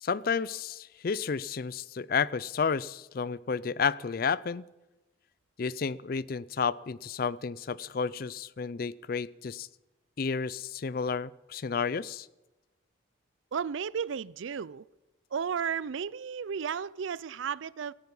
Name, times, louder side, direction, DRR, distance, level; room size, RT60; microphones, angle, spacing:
voice 1, 0.0-4.6 5.6-9.7 10.2-12.3, left 5 dB, 50° left, 0.4 m, -31 dB
voice 2, 13.5-14.8 15.3-17.9, right 7 dB, 75° right, 0.4 m, -33 dB
17.5 x 14.0 x 5.5 m
head